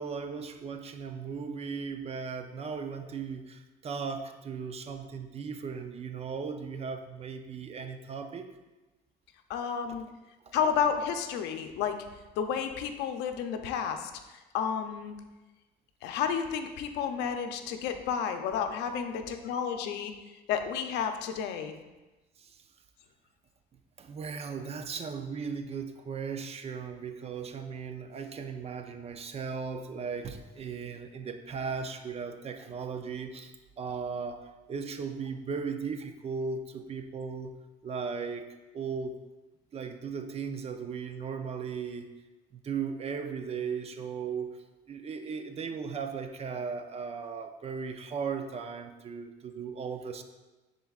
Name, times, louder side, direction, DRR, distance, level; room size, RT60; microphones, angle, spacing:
voice 1, 0.0-8.5 22.4-22.5 24.0-34.4 34.7-37.5 37.8-38.5 38.7-39.1 39.7-42.1 42.5-44.6 44.9-50.2, right 5 dB, 35° right, 7 dB, 0.6 m, -37 dB
voice 2, 9.5-10.1 10.5-12.0 12.4-15.2 16.0-20.1 20.5-21.7, left 7 dB, 90° left, 7 dB, 0.6 m, -31 dB
10.5 x 3.9 x 2.4 m, 1.1 s
cardioid pair, 110°, 17 cm